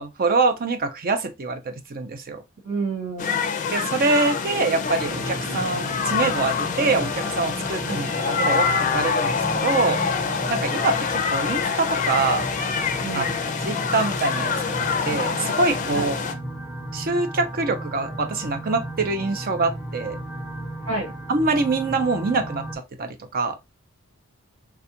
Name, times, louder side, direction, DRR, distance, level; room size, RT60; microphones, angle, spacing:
voice 1, 0.0-2.4 3.7-10.0 10.5-12.5 13.1-13.2 13.6-16.2 16.9-20.2 21.3-23.6, right 3 dB, 45° right, 0.6 m, -25 dB
voice 2, 2.6-3.6 7.8-8.0 13.0-13.4 15.9-16.1 20.8-21.1, right 3 dB, 80° right, 1.6 m, -30 dB
sound 1, 3.2-16.3, left 5 dB, 35° left, 0.5 m, -26 dB
sound 2, 4.8-22.8, right 1 dB, 5° right, 0.7 m, -35 dB
3.5 x 2.4 x 2.7 m
head